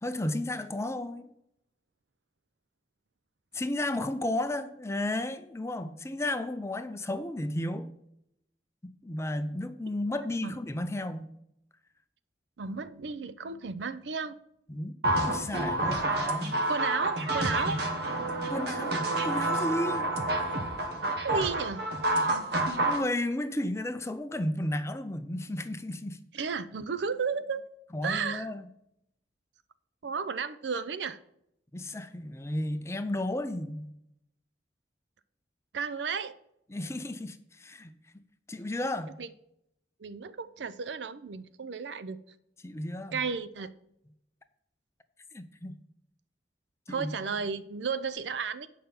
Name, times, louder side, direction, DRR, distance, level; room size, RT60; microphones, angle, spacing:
voice 1, 0.0-1.3 3.5-7.9 8.8-11.3 14.7-14.9 15.2-16.6 18.5-20.1 22.8-26.2 27.9-28.7 31.7-33.9 36.7-37.9 38.5-39.2 42.6-43.2 45.3-45.8 46.9-47.1, left 1 dB, 15° left, 0.5 m, -33 dB
voice 2, 12.6-14.4 16.7-17.8 21.2-21.8 26.3-27.7 28.0-28.5 30.0-31.2 35.7-36.4 39.2-39.3 40.0-42.2 43.1-43.7 46.9-48.7, right 5 dB, 80° right, 0.5 m, -33 dB
sound 1, 15.0-23.0, right 2 dB, 65° right, 1.2 m, -29 dB
8.5 x 5.6 x 5.5 m
head